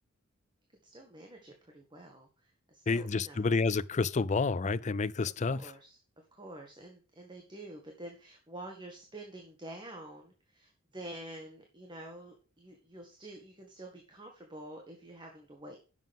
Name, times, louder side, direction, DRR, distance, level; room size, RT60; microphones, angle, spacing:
voice 1, 0.8-3.5 5.5-6.0 6.3-15.8, right 1 dB, 20° right, 1.9 m, -48 dB
voice 2, 2.9-5.7, left 4 dB, 35° left, 0.4 m, -29 dB
11.0 x 7.3 x 3.6 m
head